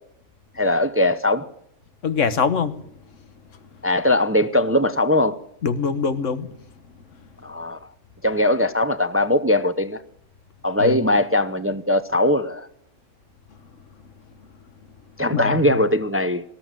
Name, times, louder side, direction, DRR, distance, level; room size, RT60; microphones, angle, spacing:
voice 1, 0.6-1.5 3.8-5.4 7.4-7.8 8.2-10.0 10.6-12.7 15.2-16.4, left 1 dB, 15° right, 0.6 m, -20 dB
voice 2, 2.0-2.8 5.6-6.5 10.8-11.0 15.3-15.7, left 5 dB, 85° left, 1.6 m, -23 dB
20.0 x 14.0 x 9.0 m
omnidirectional pair, 1.3 m